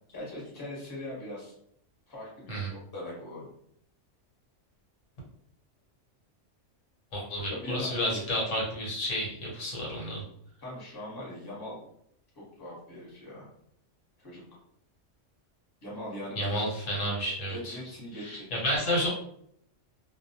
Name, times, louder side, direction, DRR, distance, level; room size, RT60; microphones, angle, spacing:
voice 1, 0.1-1.5 2.1-3.5 7.6-8.2 10.6-11.8 12.3-13.5 14.2-14.4 15.8-16.6 17.5-18.5, left 1 dB, 20° left, -5 dB, 0.8 m, -40 dB
voice 2, 7.1-10.2 16.4-17.8 18.2-19.1, equal, 85° left, -4 dB, 1.2 m, -31 dB
2.2 x 2.2 x 2.7 m, 0.71 s
omnidirectional pair, 1.3 m